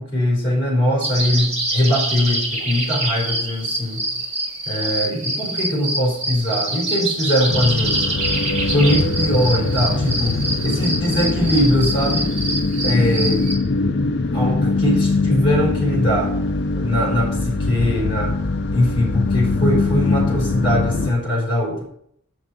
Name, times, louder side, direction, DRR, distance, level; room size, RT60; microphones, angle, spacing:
voice 1, 0.0-4.1 4.7-8.2 8.7-10.4 10.6-12.3 12.8-13.4 14.3-16.3 16.7-18.4 18.7-21.9, equal, 25° left, -1 dB, 4.0 m, -21 dB
sound 1, 1.0-13.5, right 2 dB, 30° right, 2.0 m, -25 dB
sound 2, 7.5-21.1, left 3 dB, 55° left, 0.6 m, -22 dB
7.0 x 6.6 x 7.4 m, 0.68 s
head